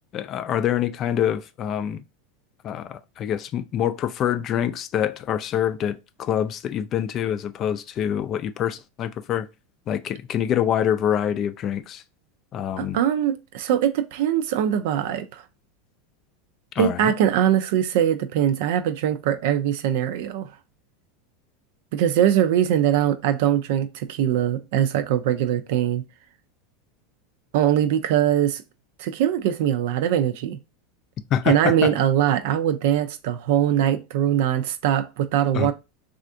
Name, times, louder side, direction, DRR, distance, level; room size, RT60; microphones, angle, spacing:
voice 1, 0.1-2.0 2.6-9.5 9.9-12.0 12.5-13.0 16.8-17.1 31.3-31.9 35.5-35.7, left 10 dB, 40° left, 0.3 m, -25 dB
voice 2, 12.8-15.4 16.8-20.5 21.9-26.0 27.5-28.6 29.0-30.6 31.5-35.7, right 10 dB, 70° right, 0.4 m, -22 dB
3.3 x 2.5 x 2.5 m
hypercardioid pair, 105°, 0 cm